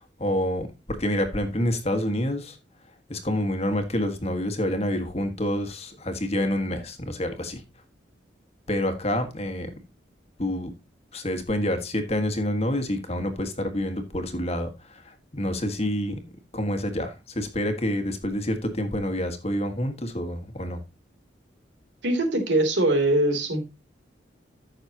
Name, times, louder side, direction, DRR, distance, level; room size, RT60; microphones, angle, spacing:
voice 1, 0.0-2.6 3.1-7.6 8.7-9.7 10.4-10.7 11.1-16.2 16.5-20.8, left 1 dB, 30° left, 1.6 m, -28 dB
voice 2, 22.0-23.7, right 1 dB, 70° right, 3.2 m, -22 dB
14.0 x 6.7 x 2.9 m
head